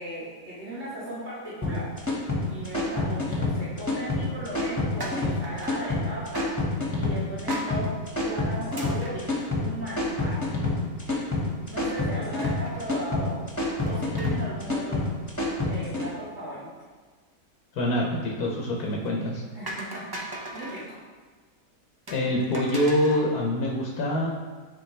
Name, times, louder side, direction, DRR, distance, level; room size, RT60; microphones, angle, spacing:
voice 1, 0.0-1.9 2.5-7.9 8.2-10.5 11.0-11.3 11.7-13.3 13.8-15.0 15.6-16.7 19.5-20.2 20.5-20.8, right 1 dB, 50° right, -12 dB, 2.7 m, -37 dB
sound 1, 1.6-16.0, left 2 dB, 10° left, 1.3 m, -27 dB
sound 2, 5.0-6.0 6.3-6.7 7.5-7.8 8.7-10.1 10.4-10.5 10.8-10.9 12.4-12.9 13.8-14.6 14.9-15.2 18.8-19.1 19.7-20.9 22.1-23.3, right 1 dB, 30° right, 0.4 m, -39 dB
voice 2, 17.7-19.4 22.1-24.3, left 1 dB, 75° left, -1 dB, 1.4 m, -25 dB
10.0 x 4.1 x 3.2 m, 1.4 s
omnidirectional pair, 1.6 m